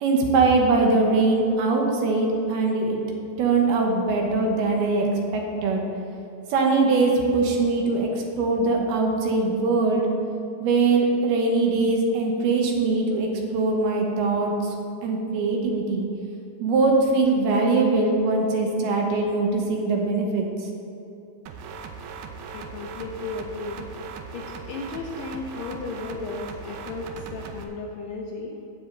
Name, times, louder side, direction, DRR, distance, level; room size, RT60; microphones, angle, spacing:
voice 1, 0.0-3.0 3.4-5.8 6.5-10.1 10.6-14.7 15.0-16.1 16.6-20.5, right 3 dB, 70° right, 1 dB, 3.1 m, -22 dB
sound 1, 21.5-27.6, right 5 dB, 90° right, 2.9 m, -39 dB
voice 2, 22.5-23.9 24.3-28.5, left 3 dB, 75° left, 0 dB, 2.1 m, -34 dB
14.5 x 8.6 x 3.9 m, 2.9 s
omnidirectional pair, 4.8 m